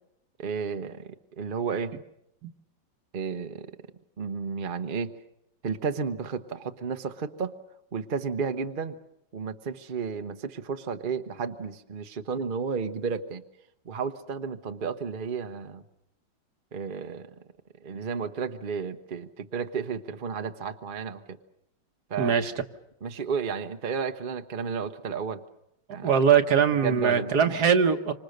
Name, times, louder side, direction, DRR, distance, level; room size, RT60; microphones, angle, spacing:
voice 1, 0.4-1.9 3.1-3.7 4.2-5.1 5.6-7.5 7.9-9.0 9.3-13.4 13.8-15.8 16.7-17.3 17.8-21.4 22.1-22.3 23.0-25.4 25.9-26.1 26.8-27.5, right 5 dB, 35° right, 7 dB, 0.9 m, -32 dB
voice 2, 22.2-22.5 25.9-28.1, right 7 dB, 60° right, 8 dB, 1.6 m, -22 dB
27.0 x 25.5 x 6.6 m, 0.80 s
omnidirectional pair, 2.0 m